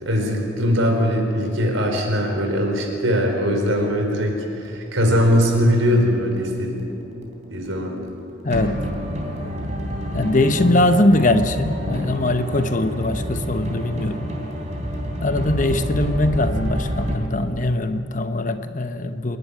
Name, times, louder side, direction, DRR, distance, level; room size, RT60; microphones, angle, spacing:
voice 1, 0.0-6.7 7.5-8.0, equal, 80° right, 2 dB, 4.6 m, -20 dB
sound 1, 3.8-17.1, equal, 35° right, 3.3 m, -29 dB
voice 2, 8.4-8.8 10.1-14.3 15.2-19.4, left 1 dB, 40° left, 9 dB, 0.9 m, -21 dB
28.0 x 11.0 x 9.9 m, 2.9 s
head